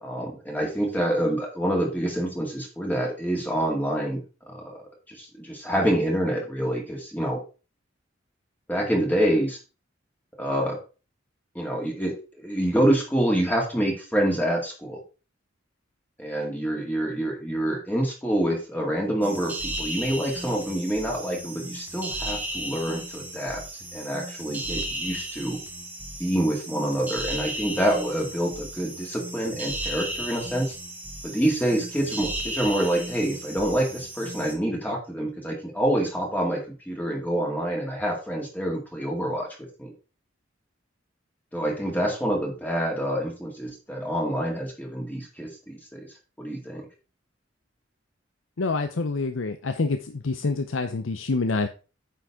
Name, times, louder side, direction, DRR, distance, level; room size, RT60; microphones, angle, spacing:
voice 1, 0.0-4.2 4.5-7.4 8.7-9.6 10.4-10.8 11.5-15.0 16.2-23.6 23.9-25.6 26.2-30.8 31.2-39.9 41.5-46.1 46.4-46.9, right 1 dB, 10° left, -1 dB, 2.1 m, -27 dB
sound 1, 19.2-34.5, right 1 dB, 10° right, 1.5 m, -35 dB
voice 2, 48.6-50.0 50.2-51.7, left 3 dB, 85° left, 8 dB, 0.7 m, -26 dB
9.4 x 6.4 x 3.6 m, 0.34 s
head